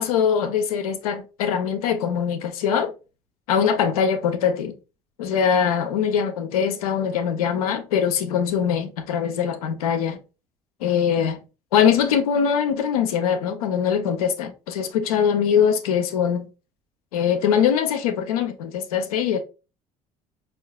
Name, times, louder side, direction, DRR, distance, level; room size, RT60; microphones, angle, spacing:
voice 1, 0.0-2.9 3.5-4.7 5.2-10.2 10.8-11.4 11.7-16.5 17.1-19.4, left 7 dB, 85° left, 0.5 m, -22 dB
4.5 x 2.3 x 2.2 m
hypercardioid pair, 65°, 18 cm